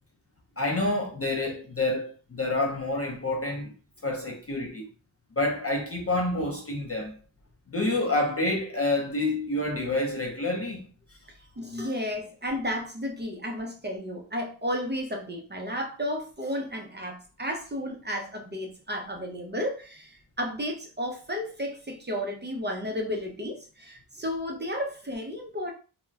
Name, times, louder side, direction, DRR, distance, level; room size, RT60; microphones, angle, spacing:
voice 1, 0.6-3.7 4.0-4.9 5.4-7.1 7.7-10.9, left 2 dB, 30° left, 0.4 m, -28 dB
voice 2, 11.6-25.7, equal, 25° right, 0.5 m, -33 dB
2.2 x 2.0 x 3.3 m
wide cardioid pair, 90°, 47 cm